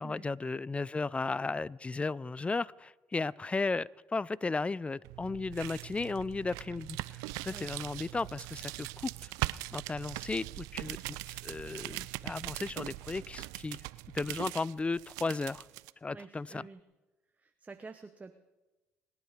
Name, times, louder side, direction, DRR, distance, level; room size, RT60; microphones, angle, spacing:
voice 1, 0.0-9.3 9.7-13.8 14.1-15.6 16.0-16.7, left 3 dB, 20° left, 24 dB, 0.4 m, -35 dB
sound 1, 5.0-15.9, right 21 dB, 80° right, 0.4 m, -41 dB
voice 2, 7.5-7.8 16.1-16.8 17.4-18.3, right 4 dB, 25° right, 7 dB, 0.9 m, -49 dB
26.5 x 9.5 x 5.0 m, 1.1 s
hypercardioid pair, 60°, 6 cm